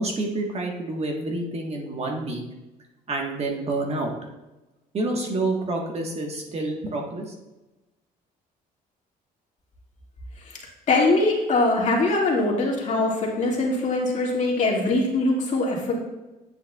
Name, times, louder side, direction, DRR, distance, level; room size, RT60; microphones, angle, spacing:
voice 1, 0.0-2.4 3.1-4.1 4.9-7.3, right 2 dB, 40° right, 1 dB, 1.3 m, -28 dB
voice 2, 10.9-15.9, left 2 dB, 45° left, -2 dB, 2.1 m, -22 dB
9.1 x 7.8 x 2.3 m, 1.1 s
cardioid pair, 110°, 17 cm